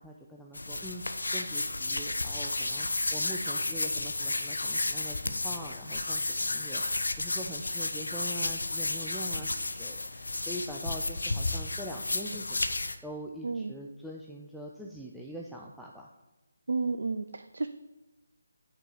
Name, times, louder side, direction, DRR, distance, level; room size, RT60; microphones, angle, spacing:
voice 1, 0.0-16.1, equal, ahead, -3 dB, 0.5 m, -43 dB
sound 1, 0.5-13.0, left 2 dB, 70° left, 0.7 m, -32 dB
voice 2, 13.4-13.7 16.7-17.7, right 3 dB, 65° right, 8 dB, 0.4 m, -31 dB
9.0 x 4.6 x 5.5 m, 1.1 s
figure-of-eight pair, 150°, 0 cm